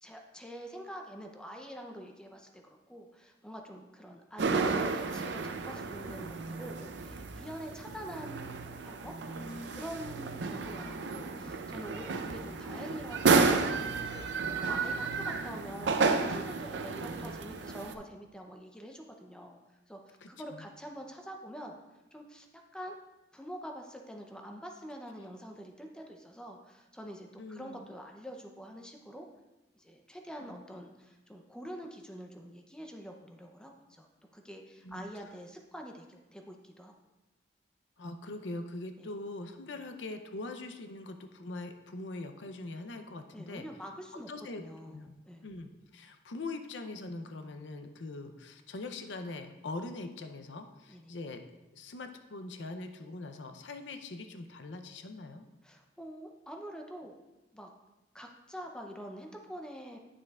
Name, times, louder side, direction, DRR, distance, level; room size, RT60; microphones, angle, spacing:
voice 1, 0.0-9.1 9.7-19.6 19.9-21.8 22.1-22.5 22.7-23.0 23.3-29.3 29.7-34.1 34.3-36.9 39.0-39.1 43.3-44.3 44.6-45.4 50.9-51.1 55.6-57.2 57.5-57.7 58.1-60.0, equal, 5° left, 2 dB, 0.6 m, -46 dB
sound 1, 4.4-17.9, right 4 dB, 80° right, 0.5 m, -32 dB
voice 2, 9.3-9.9 10.6-11.0 20.2-20.6 27.4-27.9 30.4-30.6 34.8-35.1 38.0-43.7 44.3-45.1 45.4-51.4 51.7-55.4, left 2 dB, 90° left, 7 dB, 0.6 m, -42 dB
9.9 x 6.6 x 2.4 m, 1.0 s
head